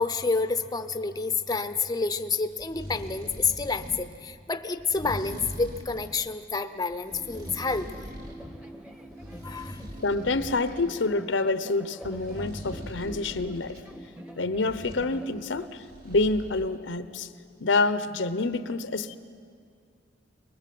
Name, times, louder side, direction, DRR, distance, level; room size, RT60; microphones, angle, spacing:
voice 1, 0.0-8.0 8.4-8.6 9.4-9.8, left 4 dB, 20° left, 9 dB, 0.7 m, -29 dB
sound 1, 2.5-4.1 4.8-6.2 6.9-8.4 8.8-10.9 12.0-13.8 14.5-15.1 15.5-16.6, equal, 55° right, 4.5 m, -42 dB
sound 2, 7.1-15.7, equal, 5° right, 1.0 m, -45 dB
voice 2, 10.0-13.8 14.4-17.3 17.6-19.2, left 3 dB, 80° left, 12 dB, 0.9 m, -27 dB
23.5 x 20.5 x 7.7 m, 2.2 s
head